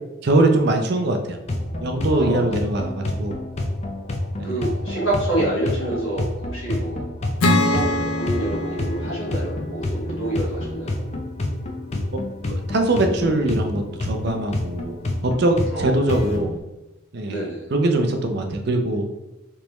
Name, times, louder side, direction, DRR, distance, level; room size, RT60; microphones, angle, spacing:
voice 1, 0.2-1.4 1.8-3.4 4.4-4.6 12.1-12.2 12.5-15.0 15.2-16.6 17.1-19.1, right 2 dB, 50° right, 4 dB, 0.5 m, -22 dB
sound 1, 1.5-16.6, left 1 dB, 30° left, 0.4 m, -29 dB
voice 2, 2.1-2.6 4.4-7.1 7.6-11.0 15.7-16.3 17.3-17.6, right 1 dB, 70° left, -5 dB, 1.4 m, -27 dB
Acoustic guitar / Strum, 7.4-10.9, left 1 dB, 85° left, 0.6 m, -25 dB
3.3 x 3.0 x 3.0 m, 1.0 s
head